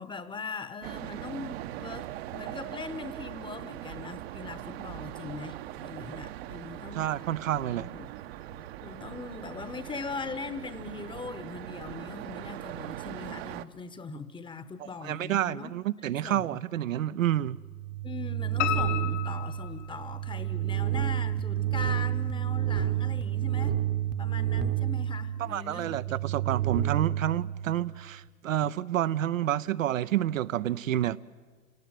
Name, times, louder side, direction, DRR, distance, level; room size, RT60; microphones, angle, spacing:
voice 1, 0.0-7.0 7.7-8.1 8.5-15.7 16.0-16.5 18.0-23.8 24.2-26.4, left 4 dB, 10° left, 1.0 m, -40 dB
sound 1, 0.8-13.6, right 13 dB, 45° right, 1.0 m, -41 dB
voice 2, 7.0-7.9 15.0-17.6 25.4-31.2, right 12 dB, 60° right, 0.7 m, -29 dB
sound 2, 17.5-28.1, right 12 dB, 25° right, 1.0 m, -30 dB
Piano, 18.6-20.5 20.9-21.8 22.1-22.2 22.7-22.8 23.0-23.1, left 14 dB, 50° left, 1.4 m, -33 dB
29.5 x 17.5 x 9.1 m
figure-of-eight pair, 105°, 44 cm